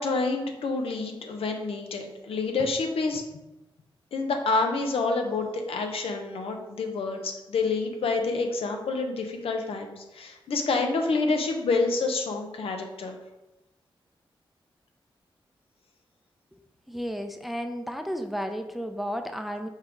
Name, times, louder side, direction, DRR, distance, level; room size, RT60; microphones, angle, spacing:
voice 1, 0.0-3.2 4.1-13.2, left 3 dB, 85° left, 4 dB, 0.8 m, -28 dB
voice 2, 16.9-19.7, equal, ahead, 6 dB, 0.6 m, -33 dB
5.7 x 3.8 x 4.5 m, 1.0 s
cardioid pair, 80°, 9 cm